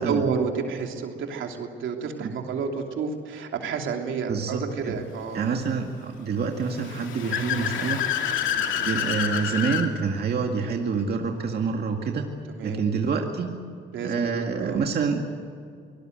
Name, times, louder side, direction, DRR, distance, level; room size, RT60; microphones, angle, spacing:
voice 1, 0.0-5.5 8.4-8.7 12.5-12.8 13.9-14.8, right 5 dB, 75° right, 3 dB, 3.1 m, -30 dB
voice 2, 4.3-4.9 5.3-8.0 8.8-12.3 12.6-13.6 14.0-15.2, right 5 dB, 55° right, 2 dB, 2.2 m, -27 dB
Car / Accelerating revving vroom, 6.7-9.9, left 8 dB, 80° left, 2.3 m, -28 dB
24.0 x 19.5 x 8.0 m, 2.3 s
cardioid pair, 90°, 20 cm